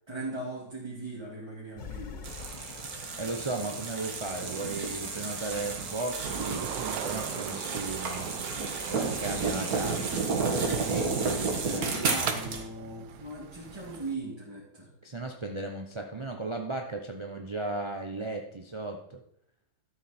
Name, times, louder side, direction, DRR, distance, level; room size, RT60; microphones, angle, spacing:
voice 1, 0.1-2.3 11.7-14.9, right 2 dB, 15° right, -7 dB, 2.4 m, -39 dB
sound 1, 1.8-5.2, left 6 dB, 60° left, 0.5 m, -46 dB
sound 2, 2.2-12.6, right 4 dB, 55° right, 1.9 m, -32 dB
voice 2, 3.2-8.3 8.9-10.2 10.7-11.2 11.6-11.8 15.0-19.2, right 2 dB, 35° right, 3 dB, 0.5 m, -36 dB
sound 3, 6.2-14.1, right 10 dB, 85° right, 1.4 m, -41 dB
13.0 x 7.3 x 4.4 m, 0.71 s
omnidirectional pair, 2.0 m